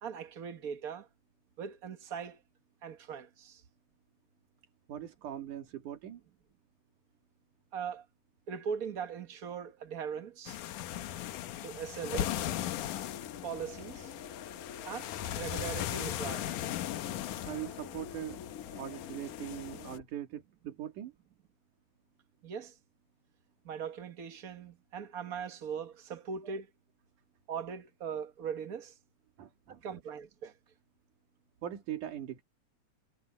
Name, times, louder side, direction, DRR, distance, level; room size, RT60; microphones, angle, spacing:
voice 1, 0.0-1.1 1.6-2.4 2.8-3.6 7.7-8.0 8.5-10.6 11.6-12.4 13.4-14.1 14.8-16.5 22.4-22.7 23.6-26.7 27.5-28.9 29.8-30.5, right 7 dB, 45° right, 1.1 m, -40 dB
voice 2, 4.9-6.2 17.3-18.4 18.7-21.1 26.4-26.5 29.4-29.9 31.6-32.4, right 11 dB, 80° right, 3.6 m, -41 dB
sound 1, 10.5-20.0, left 12 dB, 85° left, 2.5 m, -38 dB
sound 2, 12.8-20.0, left 7 dB, 35° left, 1.6 m, -48 dB
omnidirectional pair, 3.6 m